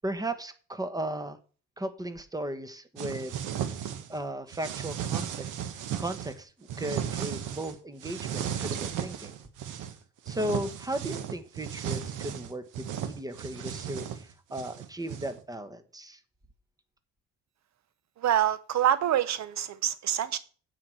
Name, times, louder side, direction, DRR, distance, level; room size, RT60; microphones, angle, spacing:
voice 1, 0.0-1.4 1.8-3.4 4.1-5.5 6.0-9.3 10.3-16.2, right 1 dB, 10° right, 10 dB, 1.3 m, -36 dB
sound 1, 3.0-4.2 4.5-6.3 6.7-7.7 8.0-9.9 10.3-15.4, right 9 dB, 90° right, 1.2 m, -35 dB
voice 2, 18.2-20.4, right 11 dB, 65° right, 15 dB, 0.7 m, -26 dB
8.6 x 4.9 x 7.4 m, 0.39 s
cardioid pair, 90°, 30 cm